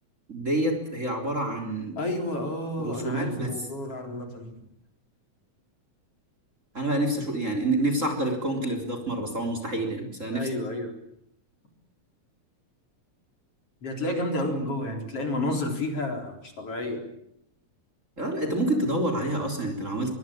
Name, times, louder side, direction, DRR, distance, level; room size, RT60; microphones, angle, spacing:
voice 1, 0.3-2.0 2.8-3.5 6.7-10.5 18.2-20.2, right 1 dB, 25° right, 6 dB, 4.0 m, -28 dB
voice 2, 2.0-4.6 10.3-11.0 13.8-17.1, left 1 dB, 50° left, 4 dB, 5.0 m, -31 dB
24.0 x 23.0 x 8.8 m, 0.75 s
omnidirectional pair, 3.4 m